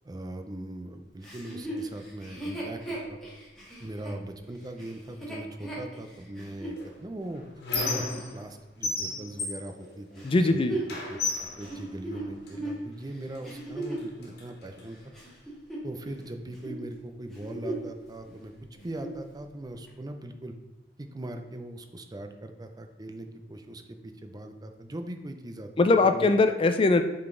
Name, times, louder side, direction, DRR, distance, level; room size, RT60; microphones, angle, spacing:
voice 1, 0.0-2.8 3.1-3.2 3.8-7.4 7.8-10.8 11.1-15.0 15.8-18.5 18.8-20.5 21.0-25.7 26.0-26.3, right 1 dB, 20° right, 7 dB, 0.5 m, -40 dB
Chuckle chortle, 1.2-6.8 7.4-7.5 10.2-14.1 14.7-16.2 16.5-16.8 17.2-18.0 18.3-18.4 18.7-19.2 19.9-20.0, right 2 dB, ahead, 1.7 m, -38 dB
Squeak, 6.8-8.5 8.8-10.5 10.9-12.6 13.3-13.5 13.8-14.8, left 3 dB, 65° left, 1.6 m, -34 dB
voice 2, 10.2-10.7 25.8-27.0, left 3 dB, 30° left, 8 dB, 0.4 m, -21 dB
7.5 x 3.9 x 3.7 m, 1.1 s
head